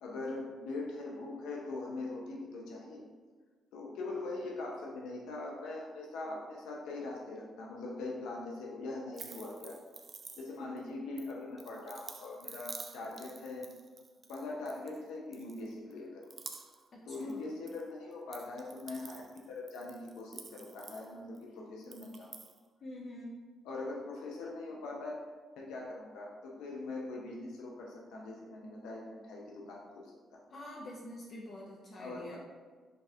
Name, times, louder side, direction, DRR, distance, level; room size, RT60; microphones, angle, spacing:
voice 1, 0.0-3.0 3.7-9.8 10.4-13.6 14.3-16.3 17.1-19.2 19.5-22.3 23.6-25.1 25.6-30.5 32.0-32.4, left 2 dB, 90° left, -2 dB, 0.7 m, -42 dB
sound 1, 9.1-10.8 11.2-15.0 15.3-15.9 16.2-16.9 17.1-17.8 18.1-21.4 21.8-22.6, right 5 dB, 40° right, 0.4 m, -49 dB
voice 2, 10.5-10.9 16.9-17.5 22.8-23.4 30.5-32.4, left 1 dB, 50° left, -3 dB, 0.6 m, -46 dB
6.4 x 2.4 x 2.7 m, 1.4 s
cardioid pair, 90°, 0 cm